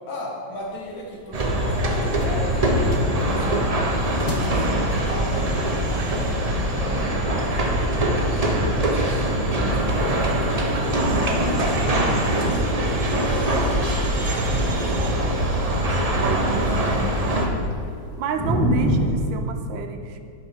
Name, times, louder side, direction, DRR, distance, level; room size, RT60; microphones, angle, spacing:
voice 1, 0.1-2.8 3.1-3.7 4.3-8.4 8.8-9.2 9.5-11.5 12.0-13.7 14.7-15.7 16.2-16.7, left 1 dB, 85° left, -3 dB, 2.5 m, -36 dB
sound 1, 0.5-19.1, equal, ahead, 1.7 m, -34 dB
sound 2, 1.3-6.5, left 2 dB, 35° left, 0.6 m, -41 dB
sound 3, 1.3-17.5, right 1 dB, 50° right, 0.4 m, -22 dB
voice 2, 16.0-17.6 18.2-20.2, right 6 dB, 75° right, 7 dB, 1.4 m, -31 dB
11.0 x 6.8 x 4.5 m, 2.3 s
omnidirectional pair, 2.1 m